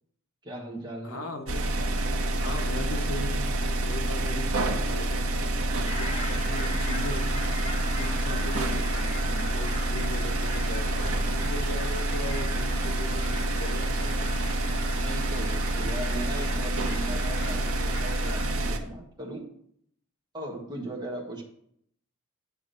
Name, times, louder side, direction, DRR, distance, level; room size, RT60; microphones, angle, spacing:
voice 1, 0.4-1.3 6.1-6.2 15.0-19.5 20.3-21.4, right 1 dB, 20° right, -1 dB, 1.6 m, -38 dB
voice 2, 1.0-1.6 2.3-7.6 7.9-14.3, left 2 dB, 75° left, 3 dB, 1.1 m, -39 dB
sound 1, 1.5-18.8, right 1 dB, 85° right, 1.0 m, -28 dB
sound 2, 5.9-18.6, left 1 dB, 30° left, 1.6 m, -40 dB
9.8 x 3.6 x 6.6 m, 0.68 s
head